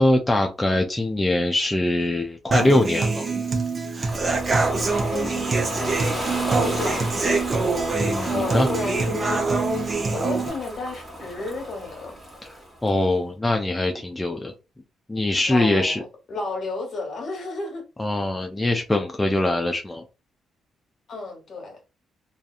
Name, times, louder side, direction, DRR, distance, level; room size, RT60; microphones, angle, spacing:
voice 1, 0.0-3.3 7.9-8.7 12.8-14.5 15.1-16.0 18.0-20.0, left 1 dB, 15° left, 0.4 m, -22 dB
Human voice / Acoustic guitar, 2.5-10.5, right 3 dB, 35° right, 0.6 m, -24 dB
Ocean, 4.1-12.9, equal, 10° right, 1.3 m, -34 dB
voice 2, 4.5-7.4 8.1-9.4 9.7-12.2 15.5-17.8 21.1-21.8, left 3 dB, 55° left, 1.2 m, -33 dB
2.6 x 2.4 x 2.4 m
cardioid pair, 90°, 0 cm